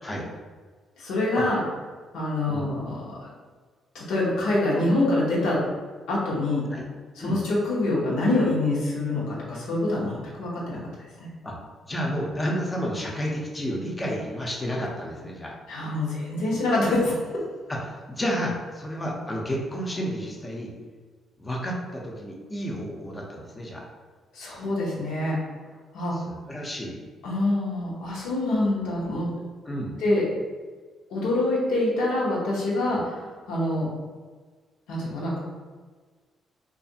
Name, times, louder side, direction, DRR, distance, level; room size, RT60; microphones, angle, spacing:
voice 1, 1.0-1.6 2.1-3.3 3.9-5.6 6.1-6.6 7.2-10.8 11.2-11.3 15.7-17.4 24.3-25.4 25.9-26.2 27.2-29.3 30.0-30.2 31.1-33.9 34.9-35.4, left 2 dB, 90° left, -5 dB, 0.9 m, -25 dB
voice 2, 11.9-15.6 17.7-20.7 21.4-23.8 26.1-27.0 29.7-30.0 32.9-33.0, equal, 20° left, -2 dB, 0.6 m, -31 dB
2.7 x 2.4 x 2.7 m, 1.5 s
cardioid pair, 90°, 0 cm